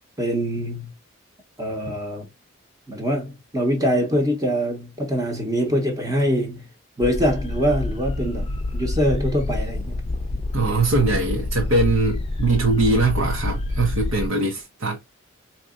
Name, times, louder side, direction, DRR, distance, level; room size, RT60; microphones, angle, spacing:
voice 1, 0.2-0.9 1.6-2.3 2.9-6.7 7.0-10.0, equal, 20° right, 0.8 m, -24 dB
sound 1, 7.0-14.3, left 2 dB, 30° left, 0.5 m, -27 dB
voice 2, 10.5-15.0, right 3 dB, 80° right, 1.0 m, -21 dB
4.5 x 2.9 x 2.4 m
head